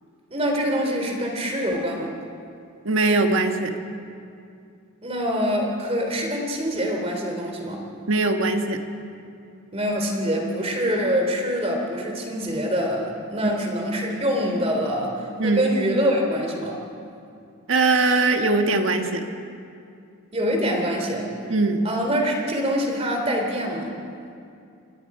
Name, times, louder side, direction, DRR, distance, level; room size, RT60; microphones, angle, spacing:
voice 1, 0.3-2.1 5.0-7.8 9.7-16.8 20.3-21.3 21.8-23.9, equal, 25° right, 1 dB, 3.2 m, -25 dB
voice 2, 2.8-3.7 8.1-8.8 13.4-13.5 15.4-15.6 17.7-19.2 21.5-21.9, right 3 dB, 60° right, 5 dB, 1.6 m, -21 dB
27.5 x 21.5 x 4.9 m, 2.5 s
head